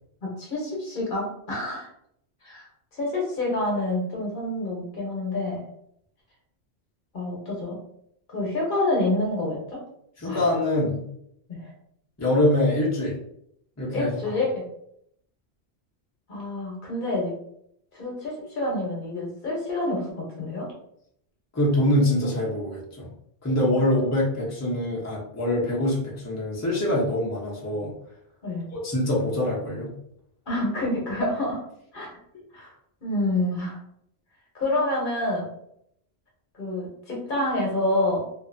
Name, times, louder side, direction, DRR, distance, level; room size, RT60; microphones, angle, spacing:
voice 1, 0.2-1.9 2.4-2.7 2.9-5.6 7.1-7.8 8.3-9.8 10.2-10.5 11.5-11.7 13.9-14.6 16.3-17.3 17.9-20.7 28.4-28.7 30.5-31.6 31.9-32.1 32.5-32.7 33.0-33.8 34.5-35.5 36.5-38.2, left 1 dB, 55° left, -3 dB, 1.0 m, -27 dB
voice 2, 10.2-11.0 12.2-13.2 13.8-14.4 21.5-23.1 23.4-27.9 28.8-29.9, left 1 dB, 20° left, -5 dB, 0.6 m, -24 dB
2.6 x 2.5 x 2.5 m, 0.72 s
omnidirectional pair, 1.1 m